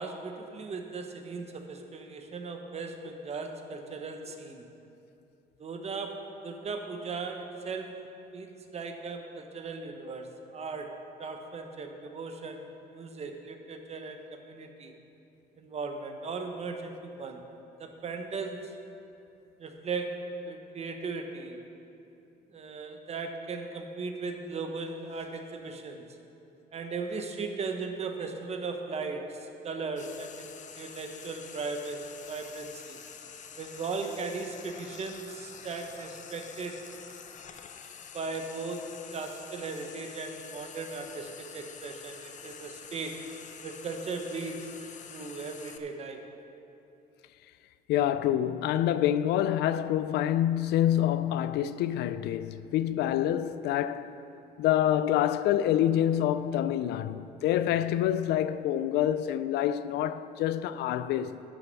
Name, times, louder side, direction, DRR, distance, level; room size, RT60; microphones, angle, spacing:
voice 1, 0.0-4.7 5.6-8.0 8.3-14.9 15.6-17.4 17.8-18.7 19.6-21.6 22.5-26.0 26.7-33.0 33.6-36.8 38.1-43.3 43.6-46.3, right 4 dB, 40° right, 1.1 m, -37 dB
Frying (food), 30.0-45.8, left 7 dB, 45° left, 0.7 m, -47 dB
voice 2, 47.9-54.1 54.6-61.4, left 11 dB, 80° left, 0.4 m, -27 dB
10.5 x 6.7 x 6.8 m
cardioid pair, 110°, 17 cm